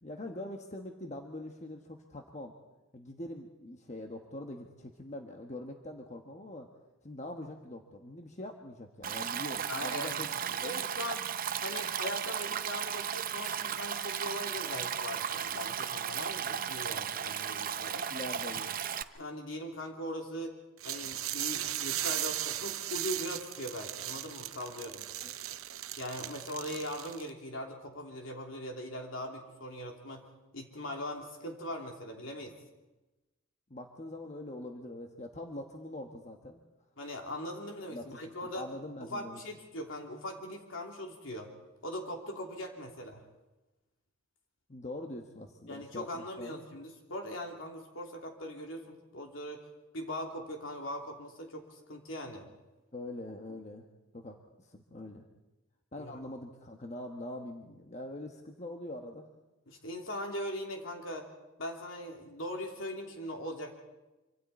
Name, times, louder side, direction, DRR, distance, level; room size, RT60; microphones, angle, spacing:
voice 1, 0.0-2.5 2.9-6.7 7.0-10.3 10.6-10.7 18.1-18.7 25.2-25.3 33.7-36.6 37.9-39.4 44.7-46.7 52.9-53.8 54.1-54.4 54.6-55.2 55.9-59.3, left 1 dB, 35° left, 3 dB, 1.1 m, -43 dB
Stream, 9.0-19.0, right 8 dB, 45° right, 0.6 m, -35 dB
voice 2, 9.7-10.2 10.6-11.3 11.6-18.1 19.1-20.6 20.8-25.1 26.0-30.2 30.5-32.5 37.0-38.6 39.0-41.5 41.8-43.2 45.7-49.6 49.9-52.5 56.0-56.1 59.7-61.3 61.6-63.7, left 1 dB, 70° left, 2 dB, 3.0 m, -40 dB
sound 1, 20.8-27.3, right 13 dB, 90° right, 0.8 m, -37 dB
25.5 x 25.5 x 4.2 m, 1.1 s
head